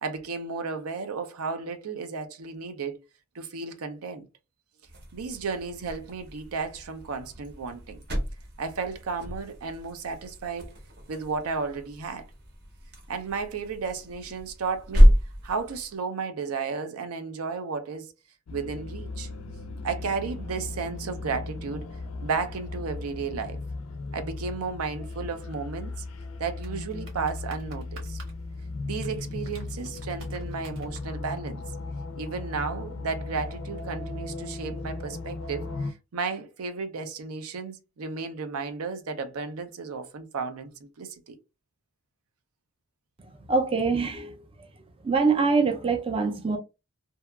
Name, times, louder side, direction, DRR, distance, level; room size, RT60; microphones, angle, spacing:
voice 1, 0.0-3.0 3.3-4.3 5.1-8.0 8.6-10.7 11.1-12.3 13.1-15.1 15.4-18.1 18.5-19.3 19.8-21.9 22.2-23.6 24.1-26.0 26.4-28.2 28.8-31.6 32.2-41.4, right 5 dB, 85° right, 0.5 m, -33 dB
sound 1, 4.8-16.0, equal, 50° right, 0.7 m, -27 dB
sound 2, 18.5-35.9, left 3 dB, 65° left, 0.3 m, -37 dB
sound 3, 26.1-31.1, right 2 dB, 70° right, 1.0 m, -50 dB
voice 2, 43.2-44.7 45.0-46.6, right 4 dB, 25° right, 0.4 m, -25 dB
2.7 x 2.3 x 2.3 m
head